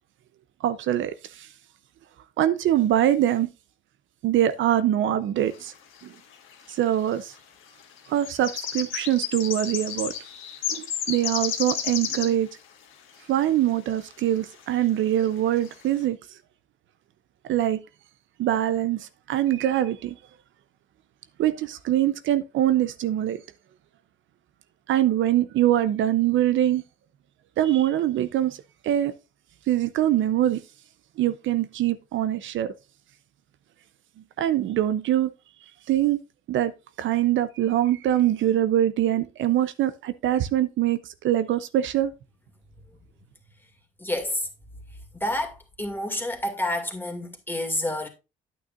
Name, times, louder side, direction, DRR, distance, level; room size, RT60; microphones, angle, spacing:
voice 1, 0.6-1.5 2.4-3.5 4.2-5.7 6.0-6.1 6.7-7.3 8.1-10.1 10.7-12.5 13.3-16.2 17.5-17.8 18.4-20.2 21.4-23.4 24.9-26.8 27.6-28.6 28.8-29.1 29.7-30.6 31.2-32.7 34.4-35.3 35.9-36.2 36.5-36.7 37.0-42.1, right 12 dB, 75° right, 0.6 m, -23 dB
sound 1, 6.0-6.1 6.3-6.9 7.8-12.4 13.3-13.4 14.0-14.1 14.5-14.8 15.2-15.3 15.6-15.8, left 9 dB, 85° left, 1.5 m, -31 dB
voice 2, 44.0-44.5 45.1-48.1, left 1 dB, 10° left, 2.2 m, -29 dB
9.3 x 8.6 x 2.5 m
cardioid pair, 90°, 20 cm